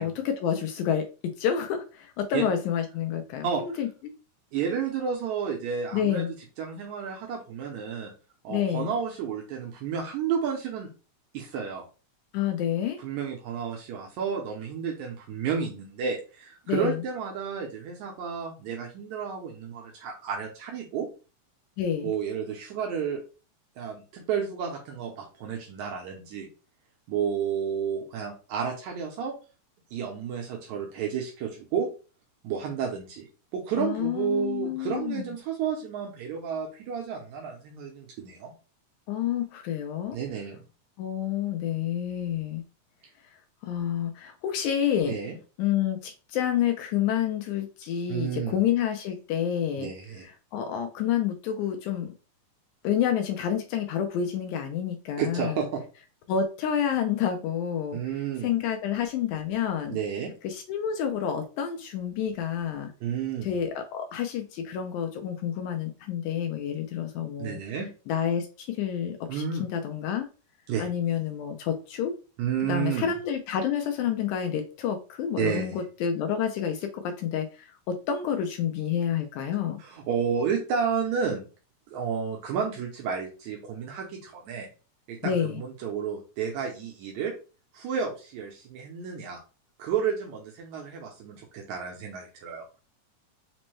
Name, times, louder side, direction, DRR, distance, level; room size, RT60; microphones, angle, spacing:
voice 1, 0.0-3.9 5.9-6.3 8.5-8.9 12.3-13.0 16.7-17.0 21.8-22.1 33.8-35.3 39.1-40.2 41.0-42.6 43.6-45.2 45.6-49.9 50.2-52.1 52.8-55.6 56.3-58.0 58.4-60.0 60.4-62.9 63.4-67.6 68.1-70.3 70.8-72.1 72.7-79.8 85.2-85.6, left 9 dB, 80° left, 5 dB, 1.9 m, -29 dB
voice 2, 3.4-3.8 4.5-6.3 6.6-8.1 8.4-10.9 11.3-11.9 13.0-21.1 22.0-23.2 23.8-26.5 27.1-29.4 29.9-31.9 32.4-33.3 33.5-38.5 40.1-40.6 45.1-45.4 48.1-48.6 49.8-50.3 55.2-55.8 57.9-58.5 59.9-60.3 63.0-63.5 67.4-67.9 69.3-69.6 70.7-70.9 72.4-73.1 75.4-75.8 79.8-81.4 81.9-84.7 85.1-87.3 87.7-89.4 89.8-92.7, right 7 dB, 75° right, 0 dB, 2.0 m, -31 dB
5.1 x 2.1 x 3.0 m, 0.34 s
omnidirectional pair, 3.5 m